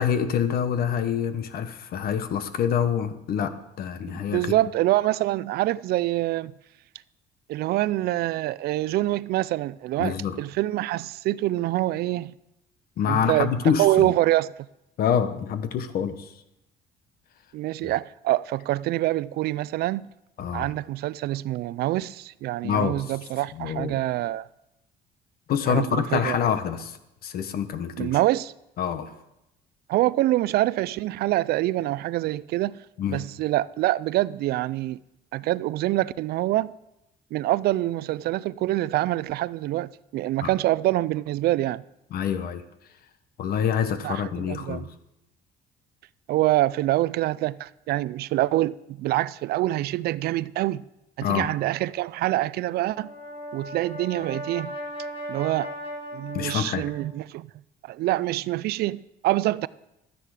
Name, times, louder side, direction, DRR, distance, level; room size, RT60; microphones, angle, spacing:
voice 1, 0.0-4.5 10.0-10.4 13.0-14.1 15.0-16.3 17.8-17.9 20.4-20.7 22.6-23.0 23.6-24.0 25.5-27.0 27.2-28.2 28.8-29.1 33.0-33.2 40.4-40.5 42.1-42.6 43.4-44.9 51.2-51.5 56.3-56.9, left 8 dB, 65° left, 1.1 m, -26 dB
voice 2, 4.1-6.5 7.5-12.3 13.1-14.5 17.5-20.1 20.5-24.5 25.7-26.4 28.0-28.5 29.9-32.8 33.1-35.0 35.3-36.7 37.3-41.8 44.0-44.9 46.3-50.8 51.2-53.1 53.5-54.7 55.3-55.7 56.1-57.5 57.9-59.7, right 16 dB, 70° right, 0.4 m, -25 dB
Brass instrument, 52.8-57.1, equal, 30° left, 3.7 m, -37 dB
12.5 x 9.9 x 4.9 m
cardioid pair, 110°, 17 cm